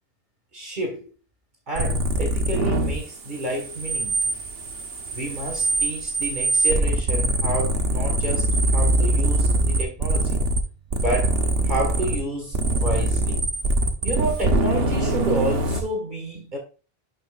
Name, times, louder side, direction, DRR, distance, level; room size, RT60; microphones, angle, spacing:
voice 1, 0.5-1.1 1.7-4.3 5.1-10.4 10.9-11.3 11.6-13.4 14.0-16.6, right 1 dB, 50° right, 2.0 m, -30 dB
sound 1, 1.8-3.0 3.3-10.6 10.9-12.2 12.5-15.8, right 2 dB, 70° right, 1.4 m, -23 dB
11.5 x 5.9 x 2.5 m
omnidirectional pair, 1.0 m